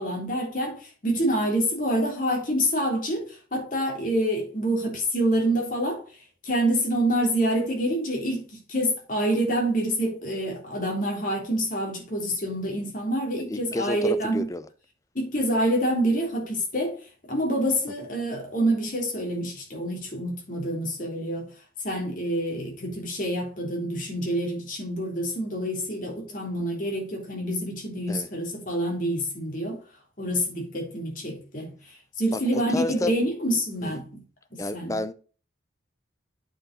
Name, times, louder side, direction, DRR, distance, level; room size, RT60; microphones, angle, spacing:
voice 1, 0.0-6.0 6.4-8.4 8.7-14.5 15.1-17.0 17.3-21.5 21.8-29.8 30.2-34.0 34.7-35.0, right 1 dB, 45° left, 3.4 m, -27 dB
voice 2, 13.5-14.7 28.1-28.3 32.3-33.1 33.8-34.0 34.6-35.1, left 1 dB, 15° left, 0.5 m, -30 dB
8.7 x 5.4 x 4.0 m
head